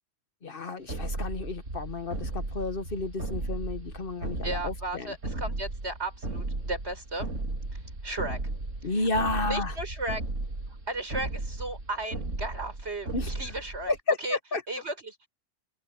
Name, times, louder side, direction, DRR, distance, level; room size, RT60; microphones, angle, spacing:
voice 1, 0.4-5.1 8.8-9.7 13.1-13.3 13.9-14.6, left 3 dB, 50° left, 1.4 m, -31 dB
sound 1, 0.9-14.0, right 2 dB, 90° right, 3.3 m, -35 dB
voice 2, 4.4-7.3 7.7-8.4 8.8-9.1 9.5-10.2 10.9-14.4 14.7-15.3, right 2 dB, 60° right, 5.1 m, -35 dB
open air
omnidirectional pair, 1.3 m